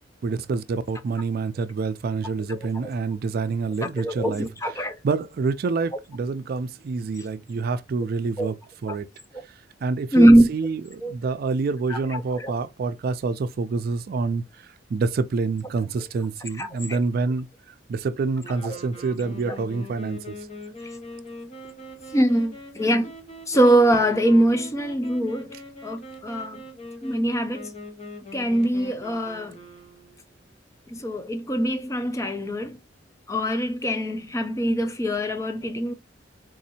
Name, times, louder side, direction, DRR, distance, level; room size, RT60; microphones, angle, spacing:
voice 1, 0.2-8.6 8.8-9.1 9.8-17.5 17.9-20.4, right 4 dB, 55° right, 0.3 m, -27 dB
voice 2, 2.5-2.9 3.8-5.0 8.4-8.5 10.1-10.5 11.0-11.1 11.9-12.0 12.4-12.5 16.6-17.0 18.7-18.8 22.1-23.1 23.5-25.5 25.8-26.6 27.0-27.7 28.3-29.6 30.9-32.8 33.3-35.9, right 1 dB, 15° left, 0.5 m, -22 dB
sound 1, 18.4-30.3, left 1 dB, 35° left, 1.0 m, -42 dB
4.0 x 2.7 x 2.7 m
head